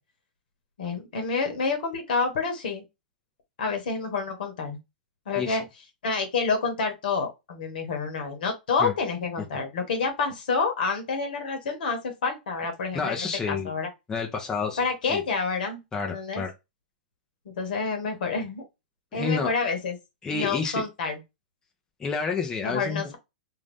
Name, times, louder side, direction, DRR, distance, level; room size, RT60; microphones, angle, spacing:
voice 1, 0.8-2.8 3.6-4.8 5.3-5.6 6.0-13.2 13.5-13.9 14.8-15.8 16.1-16.4 17.4-18.6 19.1-20.0 20.3-21.2 22.6-23.2, left 4 dB, 70° left, 1.1 m, -28 dB
voice 2, 12.9-13.7 14.1-14.8 15.1-15.2 15.9-16.5 19.1-19.5 20.2-20.8 22.0-23.1, left 5 dB, 15° left, 0.6 m, -29 dB
2.6 x 2.6 x 3.4 m
hypercardioid pair, 135°, 5 cm